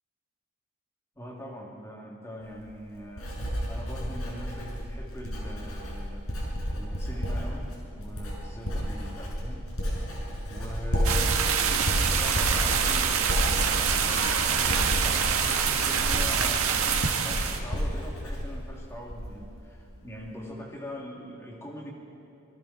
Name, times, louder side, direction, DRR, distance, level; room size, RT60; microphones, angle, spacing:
voice 1, 1.1-6.4 6.7-21.9, equal, 10° left, -3 dB, 3.1 m, -42 dB
Writing, 2.4-19.5 19.8-20.2, equal, 75° left, 6.4 m, -32 dB
sound 1, 11.0-17.6, right 7 dB, 70° right, 1.7 m, -26 dB
sound 2, 11.3-17.0, left 1 dB, 35° left, 6.0 m, -46 dB
26.0 x 22.5 x 4.5 m, 3.0 s
head